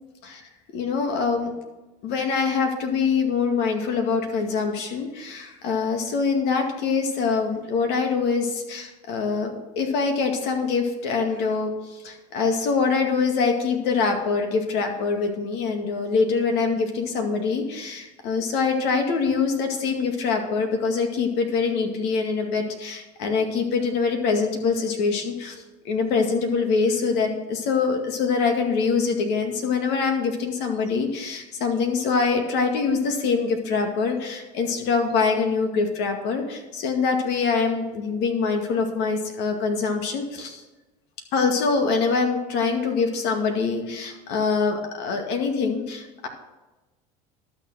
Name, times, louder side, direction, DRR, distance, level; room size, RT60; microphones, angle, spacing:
voice 1, 0.7-1.5 2.0-40.6 41.3-46.3, left 5 dB, 65° left, 4 dB, 2.1 m, -24 dB
12.0 x 6.8 x 6.1 m, 1.1 s
hypercardioid pair, 80°, 19 cm